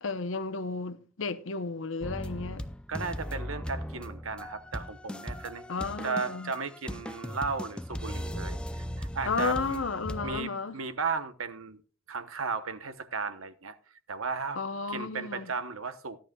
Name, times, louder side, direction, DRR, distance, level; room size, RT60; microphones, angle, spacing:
voice 1, 0.0-2.7 5.7-6.5 9.3-10.8 14.6-15.5, left 4 dB, 70° left, 0.9 m, -33 dB
sound 1, 2.0-10.4, equal, 5° left, 0.4 m, -38 dB
voice 2, 2.9-5.6 6.0-9.8 10.2-11.8 12.1-13.8 14.1-14.6 14.9-16.2, right 4 dB, 85° right, 1.0 m, -35 dB
16.0 x 11.5 x 2.3 m
head